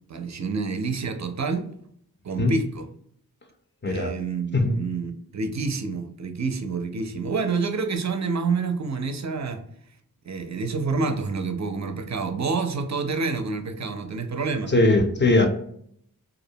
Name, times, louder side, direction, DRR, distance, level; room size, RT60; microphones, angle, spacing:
voice 1, 0.1-1.7 2.2-2.9 3.9-9.6 10.3-14.7, right 4 dB, 50° right, 0.4 m, -28 dB
voice 2, 3.8-4.1 4.5-4.8 14.7-15.5, left 2 dB, 30° left, 0.5 m, -20 dB
2.4 x 2.1 x 2.7 m
wide cardioid pair, 40°, 38 cm